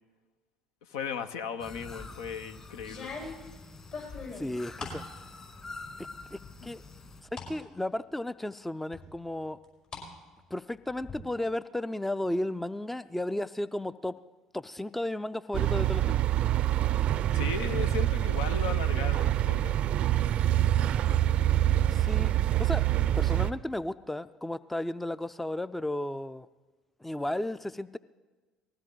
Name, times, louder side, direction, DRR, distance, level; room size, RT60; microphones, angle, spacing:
voice 1, 0.8-3.1 6.6-6.7 17.3-19.8, left 7 dB, 75° left, 9 dB, 0.7 m, -36 dB
sound 1, 1.6-7.2, left 3 dB, 30° left, 2.5 m, -47 dB
sound 2, 1.7-2.2 2.8-5.1 5.5-6.1 6.4-7.5 8.0-8.1 8.9-10.1 10.4-11.1, left 4 dB, 50° left, 5.8 m, -42 dB
voice 2, 4.3-5.0 6.0-6.8 7.2-9.6 10.5-14.2 14.5-16.2 21.9-22.3 22.6-22.9 23.2-26.5 27.0-28.0, left 1 dB, 5° left, 15 dB, 0.4 m, -34 dB
sound 3, 15.5-23.5, right 12 dB, 55° right, 0.4 m, -26 dB
20.0 x 15.5 x 3.9 m, 1.3 s
hypercardioid pair, 60°, 2 cm